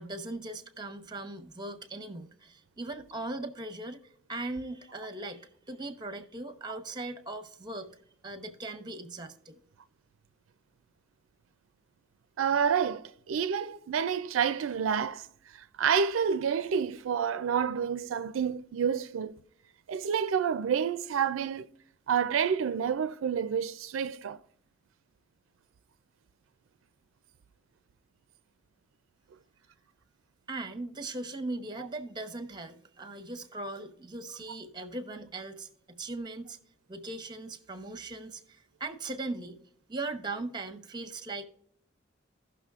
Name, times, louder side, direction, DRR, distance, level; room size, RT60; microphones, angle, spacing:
voice 1, 0.0-4.0 4.3-9.6 30.5-36.6 36.9-39.6 39.9-41.4, right 2 dB, 20° right, 0.8 m, -39 dB
voice 2, 12.4-15.3 15.5-19.3 19.9-21.7 22.1-24.4, right 7 dB, 80° right, 0.4 m, -29 dB
16.5 x 6.0 x 2.4 m
head